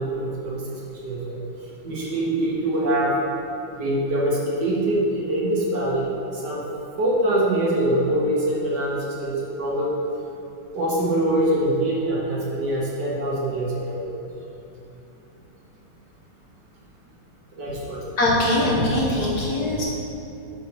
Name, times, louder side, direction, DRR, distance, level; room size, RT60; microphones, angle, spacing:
voice 1, 0.0-1.4 1.8-3.2 3.7-6.0 6.3-6.6 7.0-9.9 10.7-14.0 17.5-18.0, right 1 dB, 60° right, -5 dB, 1.7 m, -24 dB
voice 2, 18.2-19.9, left 1 dB, 55° left, -5 dB, 1.4 m, -21 dB
5.5 x 5.3 x 6.0 m, 3.0 s
omnidirectional pair, 2.3 m